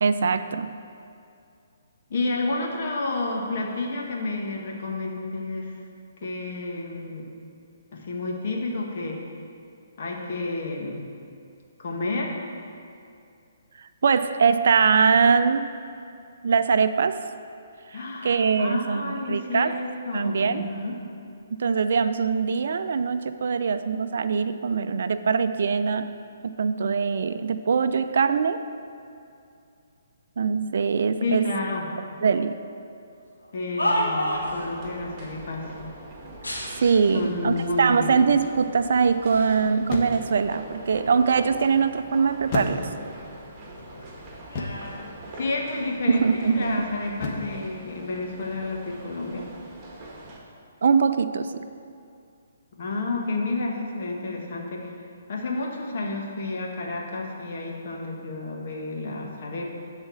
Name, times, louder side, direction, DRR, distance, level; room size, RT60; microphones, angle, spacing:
voice 1, 0.0-0.7 14.0-15.7 16.4-17.2 17.9-19.8 20.1-20.7 21.5-26.1 26.4-28.6 30.4-31.5 32.2-32.5 36.8-42.9 46.1-46.9 50.8-51.7, right 5 dB, 65° right, 11 dB, 0.4 m, -22 dB
voice 2, 2.1-5.7 6.2-7.3 7.9-9.2 10.0-11.1 11.8-12.3 17.9-20.9 31.2-31.8 33.5-35.7 37.1-38.1 45.3-49.5 52.8-54.9 55.3-59.6, left 2 dB, 55° left, -1 dB, 1.7 m, -30 dB
sound 1, 33.4-34.7 36.4-37.3 38.1-38.2 38.9-39.6 40.0-41.5 41.9-43.5 43.8-45.9 46.7-46.9, equal, 90° left, 1.8 m, -33 dB
sound 2, 34.3-50.4, right 1 dB, 20° right, 1.8 m, -43 dB
phone book drop on table and push, 37.4-37.8 39.8-40.4 42.5-43.2 44.5-45.0 47.2-47.6, left 3 dB, 35° left, 1.3 m, -32 dB
10.0 x 4.1 x 7.6 m, 2.5 s
hypercardioid pair, 135°, 0 cm